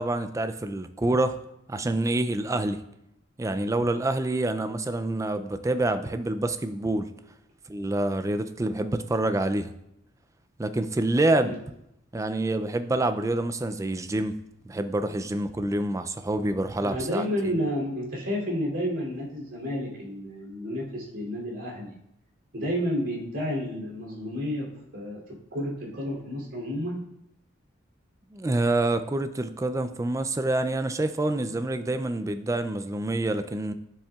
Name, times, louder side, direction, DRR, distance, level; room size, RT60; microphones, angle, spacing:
voice 1, 0.0-1.4 1.7-2.8 3.4-7.1 7.7-9.7 10.6-11.5 12.1-14.3 14.7-17.2 28.3-33.7, right 2 dB, 15° right, 10 dB, 0.3 m, -27 dB
voice 2, 16.8-21.9 22.5-24.7 24.9-27.0, equal, 65° right, -3 dB, 2.9 m, -31 dB
9.9 x 7.2 x 2.4 m, 0.81 s
head